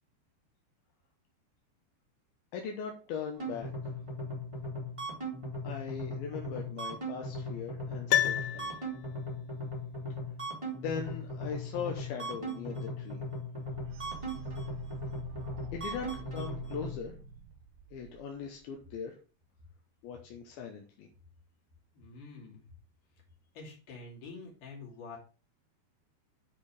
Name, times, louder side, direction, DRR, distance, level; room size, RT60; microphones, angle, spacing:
voice 1, 2.5-3.7 5.6-8.8 10.7-13.2 15.7-17.1 17.9-19.2 20.0-21.1, left 7 dB, 75° left, 2 dB, 2.4 m, -40 dB
sound 1, 3.4-16.9, equal, 15° right, 1.2 m, -38 dB
Piano, 8.1-9.4 9.6-9.7, left 12 dB, 90° left, 2.9 m, -30 dB
sound 2, 13.7-18.6, right 8 dB, 85° right, 2.8 m, -47 dB
voice 2, 21.9-22.7 23.5-25.2, left 3 dB, 50° left, -3 dB, 3.7 m, -47 dB
7.5 x 4.5 x 4.8 m, 0.37 s
omnidirectional pair, 5.0 m